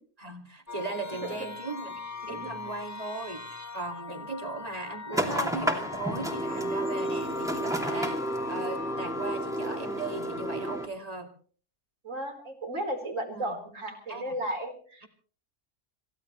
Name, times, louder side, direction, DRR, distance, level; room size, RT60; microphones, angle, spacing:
voice 1, 0.2-3.4 3.7-11.3 13.3-13.6 14.1-14.4 15.0-15.1, right 3 dB, 30° right, 4 dB, 2.5 m, -38 dB
sound 1, 0.7-8.9, left 4 dB, 15° left, 1.0 m, -41 dB
sound 2, 5.1-10.9, right 1 dB, ahead, 2.6 m, -31 dB
voice 2, 12.0-15.1, right 1 dB, 80° right, 2 dB, 4.8 m, -34 dB
27.5 x 16.5 x 3.2 m, 0.43 s
omnidirectional pair, 1.3 m